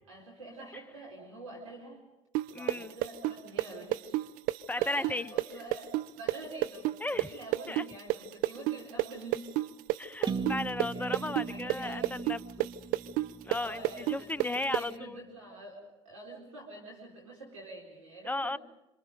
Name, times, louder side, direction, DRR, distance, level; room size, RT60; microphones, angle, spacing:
voice 1, 0.1-2.0 2.5-4.2 4.8-9.7 10.9-12.1 13.5-18.6, right 2 dB, 85° right, -3 dB, 4.3 m, -46 dB
sound 1, 2.3-10.0 10.2-14.8, right 18 dB, 60° right, 0.8 m, -29 dB
voice 2, 2.5-2.9 4.7-5.3 7.0-7.3 7.7-7.8 10.0-12.7 13.4-15.2 18.2-18.6, left 2 dB, 10° left, 16 dB, 0.8 m, -35 dB
sound 2, 10.3-14.1, right 4 dB, 30° right, 1.9 m, -39 dB
27.5 x 27.0 x 5.2 m, 0.97 s
hypercardioid pair, 60°, 16 cm